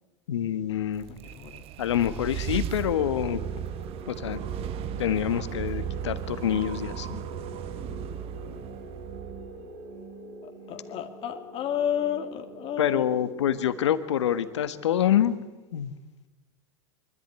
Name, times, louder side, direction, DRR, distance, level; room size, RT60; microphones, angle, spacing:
voice 1, 0.3-1.1 1.8-3.4 4.1-4.4 5.0-7.2 12.8-15.4 15.7-15.9, left 10 dB, 85° left, 12 dB, 1.5 m, -26 dB
sound 1, 0.8-10.0, right 9 dB, 40° right, 1.1 m, -36 dB
voice 2, 1.1-1.6 7.5-7.6 8.4-8.8 10.4-13.1, left 9 dB, 40° left, 5 dB, 2.2 m, -32 dB
sound 2, 3.0-15.7, right 3 dB, 70° right, 3.3 m, -44 dB
24.0 x 14.0 x 9.8 m, 1.2 s
hypercardioid pair, 110°, 14 cm